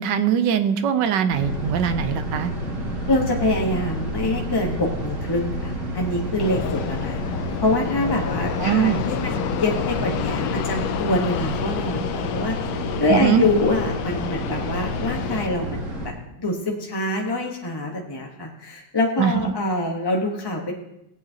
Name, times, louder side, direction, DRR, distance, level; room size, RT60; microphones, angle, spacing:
voice 1, 0.0-2.5 8.6-9.0 13.1-13.4 19.2-19.3, right 8 dB, 70° right, 10 dB, 1.2 m, -21 dB
sound 1, 1.3-16.1, right 1 dB, 35° right, 2.2 m, -30 dB
voice 2, 3.1-7.2 7.6-12.6 13.0-20.7, left 2 dB, 20° left, -1 dB, 0.6 m, -25 dB
Fixed-wing aircraft airplane, 6.4-15.5, left 10 dB, 75° left, 1.1 m, -29 dB
19.5 x 8.7 x 2.8 m, 0.82 s
omnidirectional pair, 2.3 m